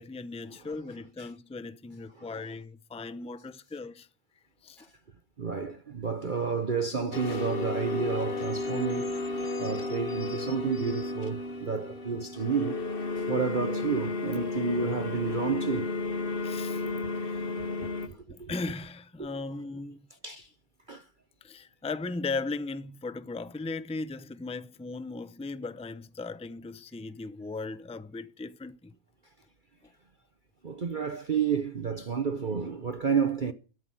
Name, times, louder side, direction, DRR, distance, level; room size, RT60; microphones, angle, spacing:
voice 1, 0.0-4.1 4.6-4.9 16.4-16.8 17.2-18.0 18.3-20.0 21.4-28.9, left 3 dB, 5° left, 0.5 m, -37 dB
voice 2, 5.4-12.8 13.2-15.9 16.8-16.9 18.1-18.5 19.2-19.3 20.2-20.5 20.9-21.1 30.6-33.5, right 5 dB, 40° right, 1.0 m, -31 dB
sound 1, 7.1-18.1, left 3 dB, 40° left, 1.4 m, -33 dB
14.5 x 13.0 x 7.8 m
omnidirectional pair, 1.5 m